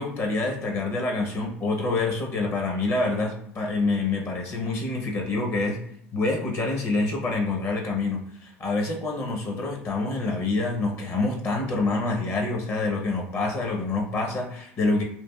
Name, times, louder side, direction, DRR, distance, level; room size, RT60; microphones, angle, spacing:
voice 1, 0.0-5.8 6.1-15.0, left 3 dB, 40° left, 1 dB, 0.7 m, -26 dB
3.2 x 2.4 x 2.2 m, 0.70 s
hypercardioid pair, 85°, 7 cm